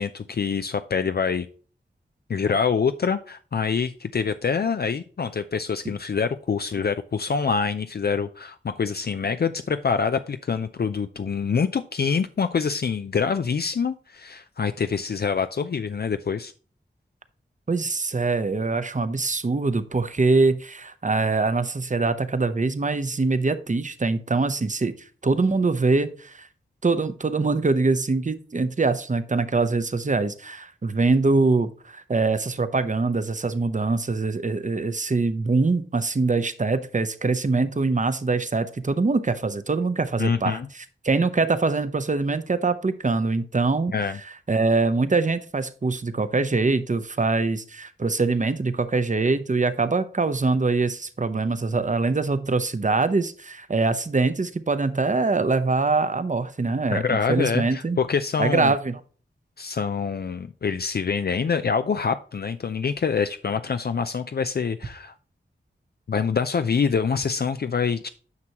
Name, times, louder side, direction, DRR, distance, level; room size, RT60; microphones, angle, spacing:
voice 1, 0.0-1.5 2.3-16.5 40.2-40.7 43.9-44.2 56.9-58.7 59.6-65.1 66.1-68.1, left 6 dB, 55° left, 10 dB, 0.4 m, -25 dB
voice 2, 17.7-24.9 25.2-26.5 26.8-43.9 44.5-58.0 58.4-59.0, right 3 dB, 40° right, 11 dB, 0.8 m, -23 dB
9.6 x 5.9 x 2.9 m, 0.40 s
wide cardioid pair, 55°, 20 cm